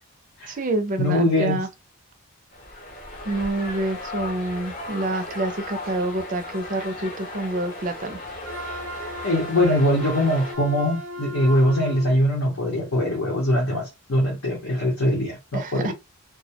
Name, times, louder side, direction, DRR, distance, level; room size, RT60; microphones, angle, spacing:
voice 1, 0.5-1.7 3.3-8.2 15.5-15.9, right 2 dB, 35° right, 0.4 m, -27 dB
voice 2, 1.0-1.6 9.2-15.9, left 1 dB, 75° left, 0.7 m, -22 dB
sound 1, 2.5-10.5, left 2 dB, 40° left, 0.7 m, -36 dB
Wind instrument woodwind instrument, 8.4-12.1, equal, 85° right, 0.5 m, -36 dB
2.2 x 2.0 x 2.8 m
head